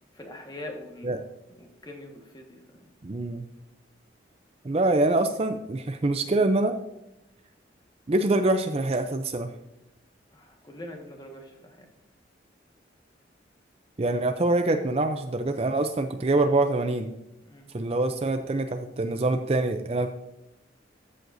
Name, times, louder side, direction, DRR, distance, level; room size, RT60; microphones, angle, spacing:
voice 1, 0.1-1.2 1.5-2.9 10.3-11.9 17.4-17.7, left 1 dB, 20° left, 2 dB, 1.5 m, -43 dB
voice 2, 3.0-3.5 4.6-6.8 8.1-9.5 14.0-17.1 17.7-20.1, right 2 dB, 30° right, 7 dB, 0.5 m, -25 dB
14.0 x 7.6 x 2.6 m, 0.89 s
head